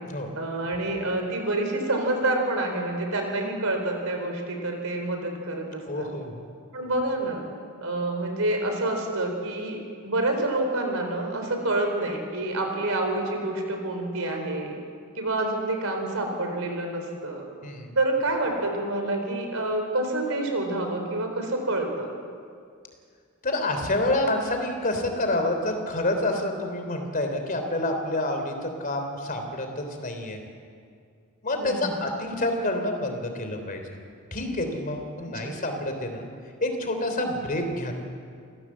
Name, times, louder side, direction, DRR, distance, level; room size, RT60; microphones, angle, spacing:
voice 1, 0.4-6.1 6.7-7.4 7.8-14.7 15.2-17.5 18.0-22.1 31.6-31.9 35.4-35.6, right 2 dB, 70° right, 4 dB, 4.2 m, -28 dB
voice 2, 5.9-6.4 17.6-17.9 23.4-30.4 31.4-33.9 34.3-36.3 36.6-37.9, left 1 dB, 40° left, 5 dB, 3.3 m, -28 dB
28.0 x 16.0 x 7.4 m, 2.2 s
head